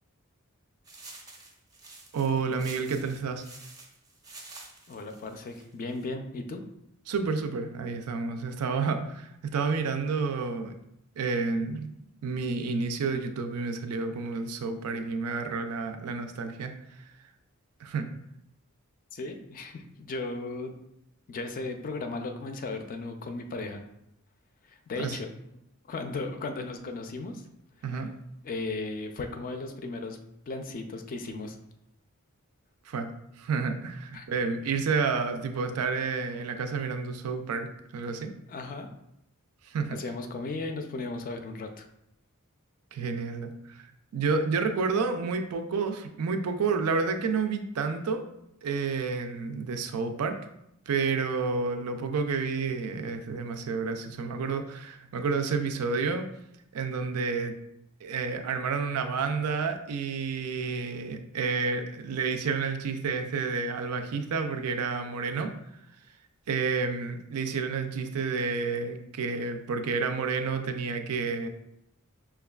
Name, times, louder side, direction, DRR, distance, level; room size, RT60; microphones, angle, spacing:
sound 1, 0.8-6.0, right 2 dB, 15° right, 0.5 m, -49 dB
voice 1, 2.1-3.4 7.1-10.7 11.2-11.9 12.2-16.7 17.8-18.1 25.0-25.2 27.8-28.1 32.9-33.1 33.4-38.3 39.7-40.0 42.9-43.9 44.1-48.2 48.6-50.4 50.9-56.3 56.7-57.5 58.0-65.5 66.5-71.5, right 4 dB, 85° right, 7 dB, 0.4 m, -30 dB
voice 2, 4.9-6.6 19.1-20.7 21.3-23.8 24.7-25.3 25.8-27.4 27.9-28.0 28.4-30.2 30.5-31.6 34.1-34.3 38.5-38.9 39.9-41.8, left 3 dB, 40° left, 6 dB, 0.4 m, -36 dB
5.6 x 2.3 x 2.3 m, 0.80 s
head